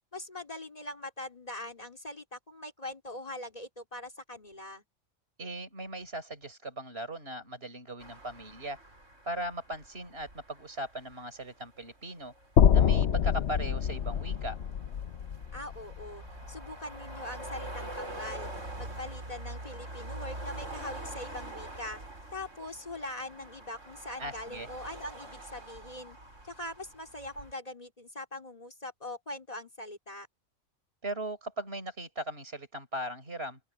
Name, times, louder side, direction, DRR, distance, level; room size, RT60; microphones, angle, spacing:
voice 1, 0.1-4.8 15.5-18.5 18.8-22.0 22.3-26.2 26.4-30.3, left 1 dB, 30° left, 4.1 m, -42 dB
voice 2, 5.4-8.8 9.2-12.3 12.7-14.6 24.2-24.7 31.0-33.6, right 1 dB, 50° right, 5.1 m, -38 dB
sound 1, 8.0-27.5, right 1 dB, 75° right, 5.6 m, -45 dB
sound 2, 12.6-16.7, left 8 dB, 60° left, 0.9 m, -26 dB
open air
omnidirectional pair, 1.3 m